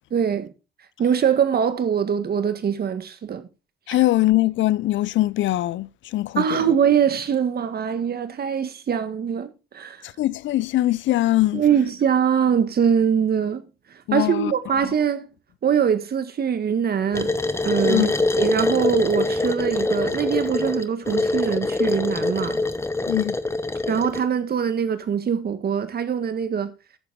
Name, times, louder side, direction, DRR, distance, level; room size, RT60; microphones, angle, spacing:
voice 1, 0.1-0.5 1.0-3.5 6.4-10.0 11.5-13.7 14.1-15.3 15.6-17.4 17.6-18.1 18.4-22.6 23.9-26.7, right 7 dB, 50° right, 1.7 m, -22 dB
voice 2, 3.9-6.7 10.0-11.6 14.1-14.5 17.9-18.1 23.1-23.4, left 16 dB, 70° left, 0.5 m, -22 dB
sound 1, 17.1-24.3, left 2 dB, 15° left, 0.9 m, -24 dB
10.0 x 7.1 x 5.1 m
cardioid pair, 90°, 20 cm